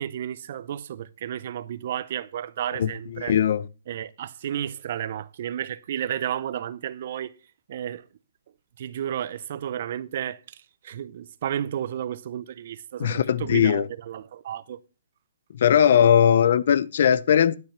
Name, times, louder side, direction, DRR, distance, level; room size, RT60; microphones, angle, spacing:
voice 1, 0.0-3.4 3.9-7.3 7.7-8.0 8.8-14.8, right 10 dB, 45° right, 0.7 m, -32 dB
voice 2, 2.8-3.6 13.0-13.8 15.5-17.6, left 9 dB, 55° left, 0.6 m, -19 dB
11.5 x 5.9 x 5.9 m
hypercardioid pair, 155°, 0 cm